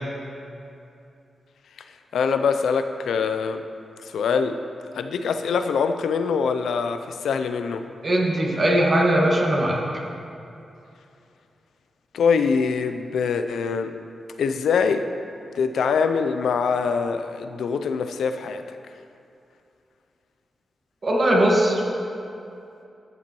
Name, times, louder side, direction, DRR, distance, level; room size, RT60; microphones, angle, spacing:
voice 1, 2.1-3.6 4.0-4.6 4.9-7.8 12.1-13.9 14.4-15.1 15.5-18.8, left 5 dB, 85° left, 8 dB, 0.4 m, -24 dB
voice 2, 8.0-9.8 21.0-21.8, right 1 dB, 50° right, -2 dB, 1.7 m, -19 dB
13.5 x 7.3 x 3.0 m, 2.6 s
supercardioid pair, 45°, 0 cm